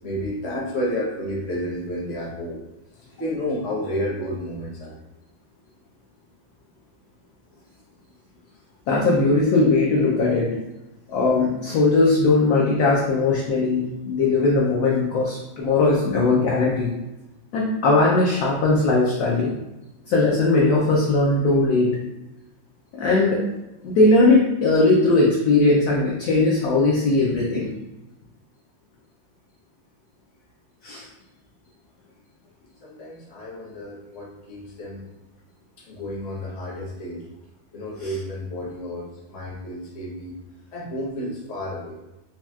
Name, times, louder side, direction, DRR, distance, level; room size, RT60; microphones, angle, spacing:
voice 1, 0.0-2.6 3.2-4.9 11.6-11.8 32.8-35.0 35.8-37.2 37.7-40.4 40.7-42.0, equal, 45° left, -4 dB, 0.9 m, -31 dB
voice 2, 8.9-10.5 11.1-16.9 17.5-19.5 20.1-22.0 22.9-23.4 23.8-27.7 30.8-31.0 38.0-38.1, left 3 dB, 75° left, -4 dB, 0.9 m, -19 dB
4.2 x 2.3 x 2.2 m, 0.97 s
omnidirectional pair, 2.1 m